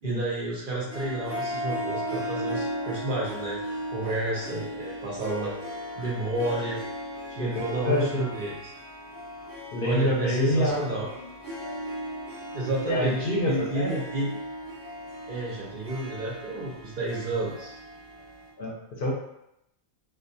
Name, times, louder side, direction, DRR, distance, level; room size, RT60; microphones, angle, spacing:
voice 1, 0.0-3.6 3.9-5.5 6.0-6.8 7.3-8.6 9.8-11.1 12.5-14.4 15.3-17.8, right 2 dB, 60° right, -4 dB, 0.6 m, -31 dB
Harp, 0.9-18.5, equal, 10° right, 0.9 m, -37 dB
voice 2, 7.8-8.2 9.7-11.3 12.9-14.0 18.6-19.1, equal, 55° left, -4 dB, 0.7 m, -27 dB
2.3 x 2.2 x 2.6 m, 0.82 s
omnidirectional pair, 1.4 m